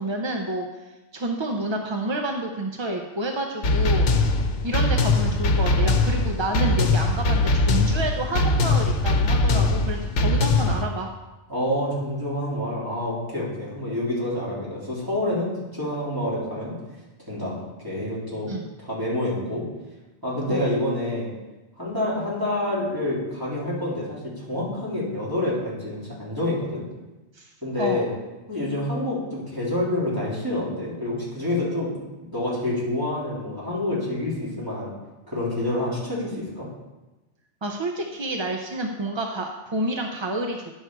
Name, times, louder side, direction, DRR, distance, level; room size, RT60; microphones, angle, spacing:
voice 1, 0.0-4.1 4.6-11.1 18.5-18.7 20.5-20.7 27.3-27.5 27.8-28.1 37.6-40.6, right 1 dB, 35° right, 3 dB, 0.5 m, -29 dB
sound 1, 3.6-10.8, left 2 dB, 80° left, 1.1 m, -21 dB
voice 2, 11.5-16.7 17.2-18.5 18.8-19.6 20.2-21.3 21.8-26.8 27.6-28.1 28.5-34.9 35.3-36.7, left 1 dB, 20° right, -8 dB, 3.4 m, -27 dB
10.0 x 6.4 x 4.6 m, 1.1 s
omnidirectional pair, 1.2 m